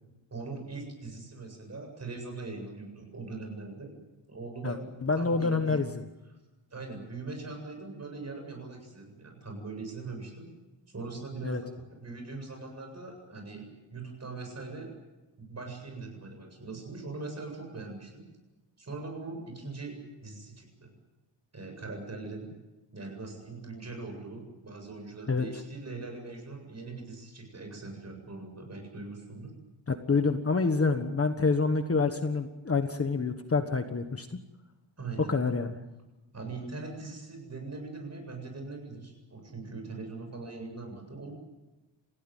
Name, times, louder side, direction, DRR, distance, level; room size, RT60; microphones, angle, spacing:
voice 1, 0.3-3.9 4.3-4.9 5.2-5.8 6.7-10.5 10.9-14.9 15.4-18.2 18.8-20.9 21.5-22.5 22.9-29.5 35.0-35.3 36.3-41.3, right 3 dB, 35° right, 3 dB, 7.8 m, -41 dB
voice 2, 5.0-6.0 11.4-11.6 25.3-25.4 29.9-34.4 35.3-35.7, left 4 dB, 30° left, 7 dB, 1.4 m, -27 dB
29.5 x 16.0 x 9.2 m, 1.1 s
wide cardioid pair, 150°, 45 cm